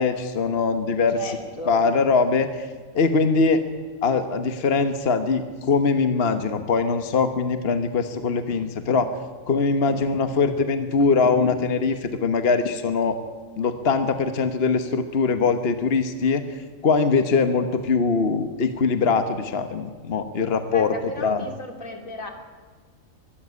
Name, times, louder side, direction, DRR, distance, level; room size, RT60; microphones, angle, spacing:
voice 1, 0.0-1.2 1.7-2.5 2.9-3.6 4.0-9.1 9.5-13.1 13.6-20.9 21.2-21.5, left 4 dB, 50° left, 9 dB, 1.4 m, -22 dB
voice 2, 1.1-1.9 9.9-10.2 20.7-22.3, left 2 dB, 85° left, 4 dB, 3.3 m, -36 dB
23.5 x 13.5 x 9.6 m, 1.5 s
omnidirectional pair, 1.4 m